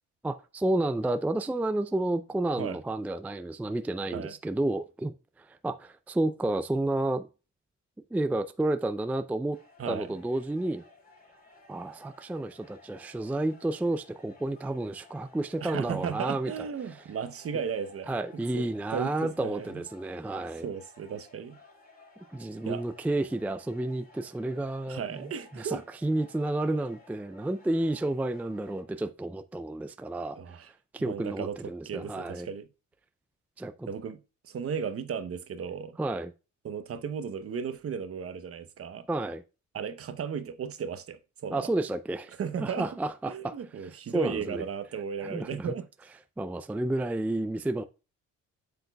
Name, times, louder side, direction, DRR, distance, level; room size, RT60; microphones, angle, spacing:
voice 1, 0.2-7.3 8.1-9.6 9.9-10.8 11.7-16.5 18.1-20.7 22.3-25.0 25.5-30.7 30.9-32.5 33.6-33.9 36.0-36.3 39.1-39.4 41.5-42.3 42.6-43.6 44.1-44.6 45.2-45.7 46.4-47.8, right 2 dB, 5° right, 0.4 m, -31 dB
sound 1, 9.5-28.8, left 2 dB, 30° left, 3.6 m, -57 dB
voice 2, 9.8-10.1 15.6-18.1 18.5-19.8 20.6-21.6 22.6-22.8 24.9-25.8 30.4-30.7 31.0-32.7 33.9-36.0 36.6-39.1 39.7-41.7 42.4-42.9 43.3-45.9, right 7 dB, 50° right, 0.9 m, -35 dB
7.9 x 6.8 x 2.3 m
cardioid pair, 90°, 30 cm